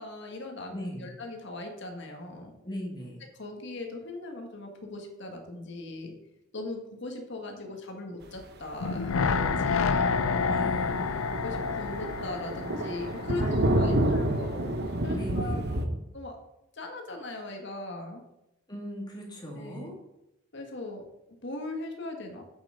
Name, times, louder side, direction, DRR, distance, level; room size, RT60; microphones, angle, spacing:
voice 1, 0.0-2.5 3.4-6.1 6.5-10.2 11.0-11.1 11.4-14.7 15.0-15.8 16.1-16.4 16.7-18.2 19.5-20.0 20.5-21.0 21.4-22.4, left 2 dB, 60° left, 3 dB, 1.8 m, -39 dB
voice 2, 0.7-1.1 2.6-3.2 10.5-11.2 13.4-14.3 15.1-15.9 18.7-20.0, equal, 20° left, -2 dB, 2.3 m, -39 dB
sound 1, 8.8-13.9 14.2-14.3, left 5 dB, 75° left, 0.5 m, -29 dB
Thunder, 8.9-9.1 9.4-9.5 9.9-10.0 10.3-10.4 10.6-15.9, right 1 dB, 50° right, 0.9 m, -29 dB
8.1 x 7.1 x 5.2 m, 0.86 s
head